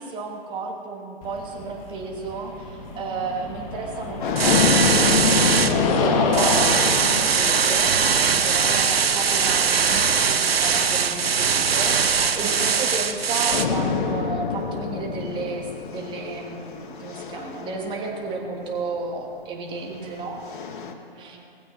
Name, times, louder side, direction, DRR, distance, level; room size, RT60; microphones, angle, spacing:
voice 1, 0.0-8.1 8.4-20.4 21.2-21.4, right 4 dB, 15° right, 1 dB, 1.5 m, -33 dB
sound 1, 1.2-10.0, left 3 dB, 35° left, 1.6 m, -28 dB
sound 2, 4.0-10.5 11.3-13.2 13.5-18.8 19.8-20.9, left 5 dB, 55° left, 1.1 m, -28 dB
sound 3, 4.4-5.7 6.3-13.6, right 6 dB, 75° right, 0.9 m, -21 dB
voice 2, 19.8-21.7, right 4 dB, 55° right, -8 dB, 3.2 m, -46 dB
19.5 x 15.0 x 3.2 m, 2.4 s
figure-of-eight pair, 130°, 30 cm